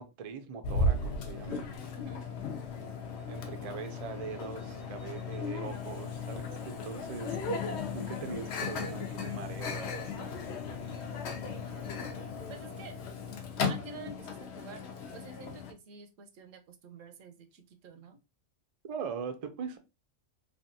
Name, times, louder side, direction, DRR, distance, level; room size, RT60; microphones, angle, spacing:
voice 1, 0.0-1.6 3.3-10.3 18.9-19.8, right 6 dB, 65° right, 0.3 m, -41 dB
Microwave oven, 0.6-15.7, left 3 dB, 65° left, 0.9 m, -36 dB
voice 2, 11.3-11.9 12.5-13.0 13.7-14.8 15.1-18.2, right 4 dB, 85° right, 1.0 m, -49 dB
3.2 x 2.3 x 2.6 m
omnidirectional pair, 1.3 m